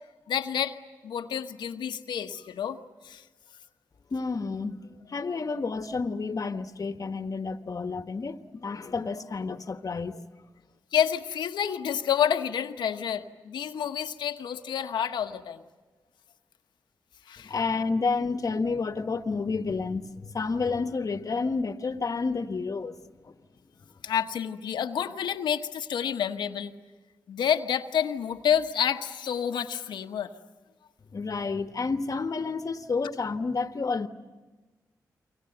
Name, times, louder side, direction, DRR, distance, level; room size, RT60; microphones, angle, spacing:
voice 1, 0.3-0.8 1.0-2.8 3.0-3.2 10.9-15.6 17.3-17.5 24.0-26.7 27.3-30.3, left 9 dB, 85° left, 1.1 m, -29 dB
voice 2, 4.1-10.2 17.4-22.9 23.2-23.3 31.1-34.1, left 4 dB, 50° left, 1.3 m, -30 dB
29.5 x 24.0 x 7.9 m
supercardioid pair, 50°, 7 cm